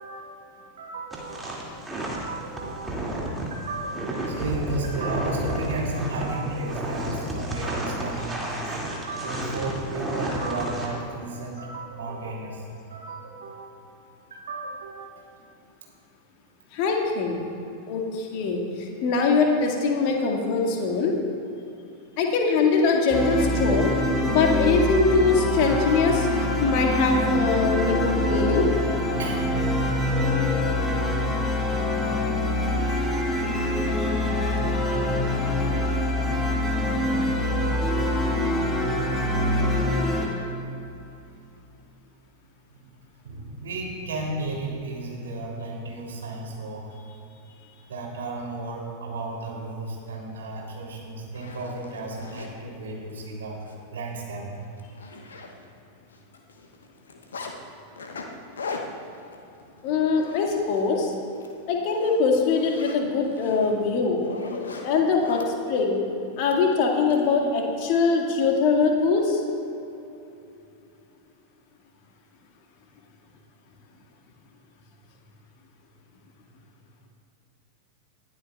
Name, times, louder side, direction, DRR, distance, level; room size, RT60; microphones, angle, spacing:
voice 1, 0.0-3.2 3.5-14.0 14.3-15.2 29.2-29.5 42.7-42.9 43.2-46.9 47.8-54.5, right 2 dB, 65° right, -2 dB, 3.2 m, -34 dB
sound 1, 1.1-10.9, right 1 dB, 10° right, 2.4 m, -31 dB
voice 2, 16.7-17.4 17.9-21.1 22.2-23.9 24.2-26.3 26.6-28.7 59.8-61.1 61.7-64.2 64.8-65.4 65.7-66.0 66.4-69.4, left 4 dB, 45° left, 1 dB, 1.9 m, -22 dB
sound 2, 23.1-40.3, left 1 dB, 15° left, 2.1 m, -24 dB
Zipper (clothing), 50.7-50.8 51.2-52.5 53.1-53.3 53.6-53.7 54.1-54.2 54.5-55.9 56.1-57.5 58.0-60.9 61.2-61.5 61.9-65.5 66.5-67.2, left 4 dB, 70° left, 1.1 m, -39 dB
20.5 x 12.5 x 2.4 m, 2.8 s
figure-of-eight pair, 90°, 0 cm